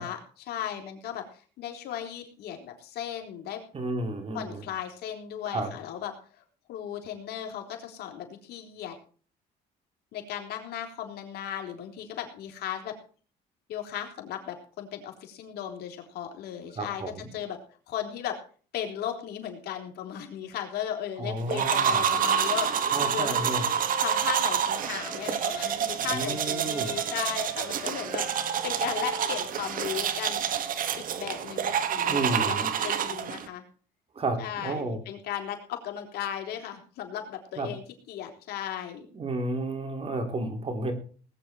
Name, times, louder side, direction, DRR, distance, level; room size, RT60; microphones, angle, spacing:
voice 1, 0.0-3.6 4.3-6.4 6.7-9.0 10.1-12.9 13.7-17.0 17.3-17.6 17.9-18.4 18.7-23.5 23.8-30.4 31.1-32.5 32.8-33.6 34.4-37.8 38.1-39.1, left 10 dB, 75° left, 3 dB, 3.7 m, -36 dB
voice 2, 3.7-4.6 5.5-5.7 16.8-17.4 21.2-22.1 22.9-23.6 26.1-26.9 32.1-32.7 34.2-35.0 37.6-37.7 39.1-40.9, right 2 dB, 35° right, 5 dB, 3.5 m, -32 dB
sound 1, 21.5-33.5, right 8 dB, 55° right, 1.6 m, -28 dB
Wind instrument woodwind instrument, 22.4-25.8 26.3-30.1, left 1 dB, 10° right, 5.6 m, -44 dB
19.5 x 9.4 x 4.4 m, 0.41 s
cardioid pair, 110°, 17 cm